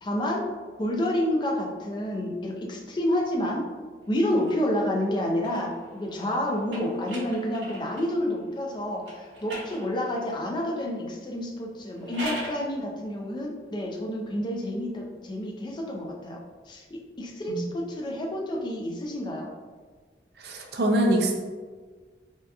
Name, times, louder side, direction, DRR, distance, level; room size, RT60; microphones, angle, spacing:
voice 1, 0.0-3.7 4.1-16.4 16.7-19.5, left 1 dB, 25° left, 0 dB, 0.4 m, -29 dB
sound 1, 4.1-8.2 9.0-10.4 11.8-12.7, equal, 80° right, 1.0 m, -40 dB
voice 2, 20.4-21.3, right 1 dB, 65° right, 1 dB, 0.5 m, -24 dB
3.4 x 2.7 x 2.2 m, 1.5 s
head